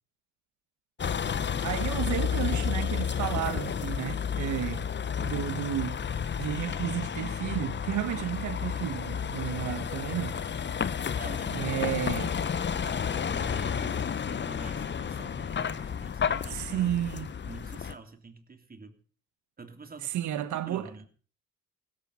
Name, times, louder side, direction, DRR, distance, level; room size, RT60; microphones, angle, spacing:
Vehicle, 1.0-17.9, left 7 dB, 35° left, 1.0 m, -31 dB
voice 1, 1.6-4.8 5.2-6.0 6.4-10.4 11.5-12.3 16.5-17.3 20.0-20.9, right 11 dB, 70° right, 1.5 m, -32 dB
voice 2, 11.2-16.9 17.4-19.0 19.6-21.1, right 4 dB, 30° right, 3.2 m, -48 dB
sound 1, 12.8-13.1 13.4-14.1 14.5-15.3 15.7-16.0 16.3-16.6, equal, 5° right, 5.8 m, -55 dB
17.0 x 13.5 x 5.8 m
supercardioid pair, 70°, 30 cm